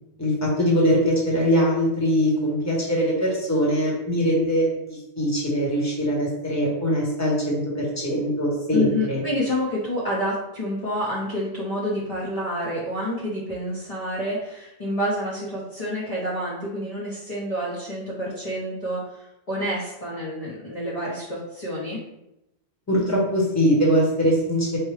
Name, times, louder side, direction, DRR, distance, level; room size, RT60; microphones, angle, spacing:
voice 1, 0.2-9.2 22.9-24.8, equal, 15° left, -4 dB, 1.0 m, -22 dB
voice 2, 8.7-22.0, left 1 dB, 40° left, -8 dB, 0.8 m, -28 dB
4.7 x 2.2 x 3.2 m, 0.89 s
omnidirectional pair, 1.1 m